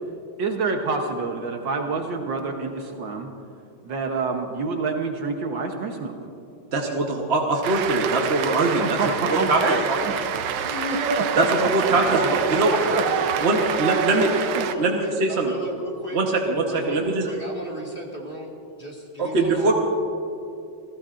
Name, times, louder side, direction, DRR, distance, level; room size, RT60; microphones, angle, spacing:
voice 1, 0.4-3.3 3.8-6.2 8.8-10.1 11.1-13.0 14.6-14.7, right 3 dB, 65° right, 3 dB, 1.6 m, -27 dB
voice 2, 6.7-9.0 9.3-10.0 10.2-10.3 11.4-12.7 13.4-14.3 14.8-15.5 16.1-17.3 19.2-19.7, right 2 dB, 40° right, 0 dB, 1.0 m, -22 dB
Cheering / Applause, 7.6-14.8, right 9 dB, 85° right, 1.6 m, -27 dB
voice 3, 10.7-11.5 12.2-13.7 14.3-16.2 16.6-19.7, equal, 25° left, -1 dB, 1.8 m, -34 dB
29.0 x 15.5 x 2.5 m, 2.7 s
omnidirectional pair, 2.3 m